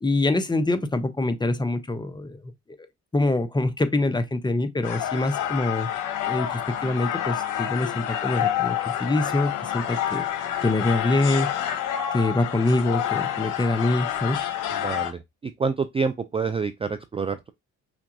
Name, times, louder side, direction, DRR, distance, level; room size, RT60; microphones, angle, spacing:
voice 1, 0.0-2.4 3.1-5.9 6.3-11.5 12.1-14.4, left 2 dB, 15° left, 0.7 m, -25 dB
sound 1, 4.8-15.1, left 10 dB, 85° left, 0.9 m, -28 dB
voice 2, 14.7-17.5, right 5 dB, 20° right, 0.3 m, -28 dB
5.8 x 2.3 x 2.7 m
cardioid pair, 90°, 30 cm